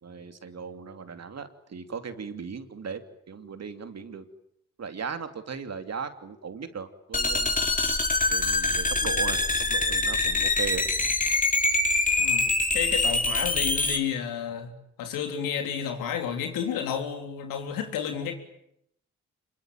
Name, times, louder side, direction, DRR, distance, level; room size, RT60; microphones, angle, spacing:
voice 1, 0.0-3.0 3.3-4.3 4.8-7.6 8.3-10.9, right 6 dB, 50° right, 8 dB, 2.9 m, -37 dB
sound 1, 7.1-14.0, left 2 dB, 25° left, 3.6 m, -24 dB
voice 2, 12.2-14.7 15.0-18.3, left 8 dB, 80° left, 5 dB, 3.7 m, -31 dB
26.5 x 22.5 x 9.3 m, 0.77 s
hypercardioid pair, 45°, 33 cm